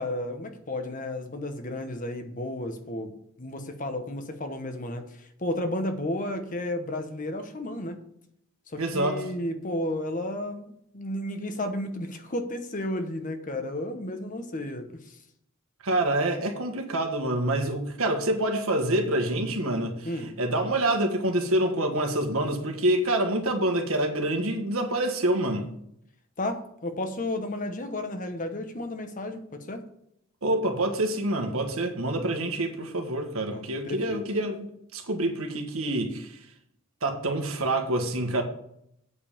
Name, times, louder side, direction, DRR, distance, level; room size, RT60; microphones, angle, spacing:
voice 1, 0.0-3.1 3.4-8.0 8.7-15.2 20.0-20.3 26.4-29.8 33.5-34.2, left 1 dB, 40° left, 1.0 m, -33 dB
voice 2, 8.8-9.2 15.8-20.1 20.4-25.7 30.4-36.3 37.0-38.4, right 1 dB, 85° right, 1.5 m, -26 dB
8.3 x 5.3 x 7.0 m
head